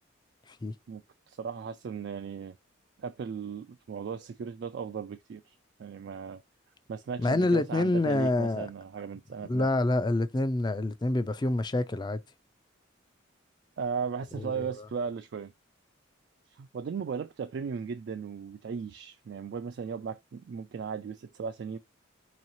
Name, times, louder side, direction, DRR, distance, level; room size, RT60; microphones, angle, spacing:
voice 1, 0.9-2.6 3.0-6.4 6.9-9.7 13.8-15.5 16.5-21.8, right 6 dB, 55° right, 0.3 m, -37 dB
voice 2, 7.2-8.7 9.4-12.2 14.4-14.9, left 2 dB, 20° left, 0.4 m, -27 dB
4.7 x 3.0 x 2.6 m
head